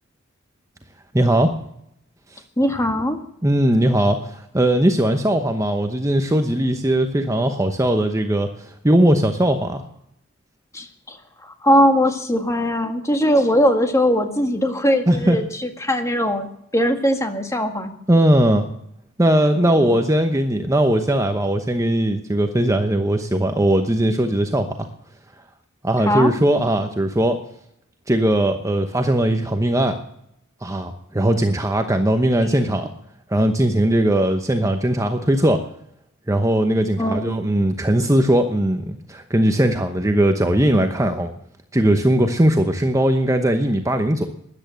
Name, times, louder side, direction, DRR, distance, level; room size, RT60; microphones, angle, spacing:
voice 1, 1.1-1.5 2.3-2.4 3.4-9.8 15.1-15.4 18.1-18.7 19.2-24.9 25.8-27.4 28.1-30.0 30.6-32.9 33.3-35.6 36.3-41.3 41.7-44.3, right 1 dB, 15° right, 6 dB, 0.9 m, -19 dB
voice 2, 2.6-3.2 10.7-11.2 11.4-16.5 16.7-17.9 19.6-20.0 26.0-26.3 37.0-37.3, equal, 15° left, 6 dB, 1.8 m, -20 dB
13.5 x 10.5 x 7.5 m, 0.74 s
head